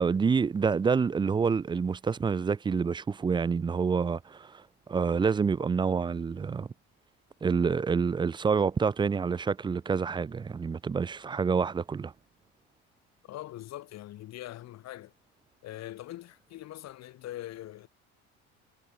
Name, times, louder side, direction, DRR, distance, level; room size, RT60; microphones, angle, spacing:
voice 1, 0.0-4.6 4.9-6.7 7.4-12.1, right 5 dB, 15° right, 0.4 m, -27 dB
voice 2, 13.2-15.1 15.6-17.9, left 14 dB, 60° left, 3.8 m, -42 dB
supercardioid pair, 105°, 30 cm